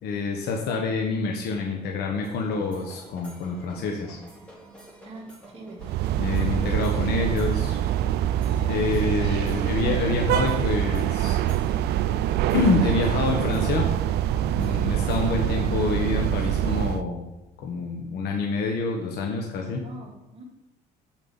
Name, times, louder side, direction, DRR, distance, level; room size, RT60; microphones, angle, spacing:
voice 1, 0.0-4.2 6.2-7.8 8.7-11.4 12.5-13.9 14.6-17.2 17.6-19.8, left 4 dB, 70° left, 1 dB, 1.3 m, -27 dB
sound 1, 2.2-15.5, right 2 dB, 5° left, 3.6 m, -47 dB
voice 2, 5.0-6.0 6.7-7.7 19.7-20.4, right 2 dB, 35° right, -1 dB, 2.8 m, -43 dB
sound 2, 5.8-17.0, right 11 dB, 75° right, 0.4 m, -24 dB
7.5 x 6.0 x 7.2 m, 0.96 s
cardioid pair, 110°, 17 cm